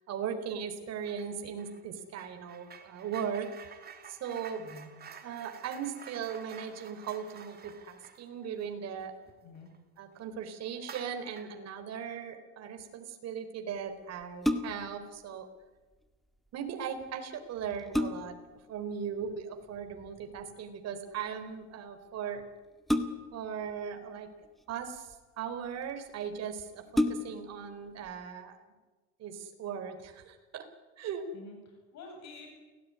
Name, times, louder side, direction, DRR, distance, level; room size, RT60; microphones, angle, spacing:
voice 1, 0.1-3.5 4.1-4.7 5.2-9.2 10.0-15.5 16.5-18.4 18.7-22.4 23.3-24.3 24.7-25.1 25.4-28.6 29.2-30.7 31.0-31.3, right 7 dB, 45° right, 7 dB, 4.2 m, -38 dB
sound 1, 1.0-1.3 1.6-9.8 10.1-10.2 10.8-11.6, right 7 dB, 25° right, 3.1 m, -51 dB
voice 2, 4.6-4.9 9.4-9.7 31.3-32.5, left 3 dB, 50° left, 2 dB, 8.0 m, -49 dB
sound 2, 14.2-15.0 17.0-17.1 17.6-18.5 20.0-20.4 22.9-23.5 24.4-25.1 25.9-26.0 26.3-26.4 26.9-27.6 28.0-28.1, left 1 dB, ahead, 1.9 m, -31 dB
28.5 x 18.5 x 9.7 m, 1.3 s
cardioid pair, 140°, 34 cm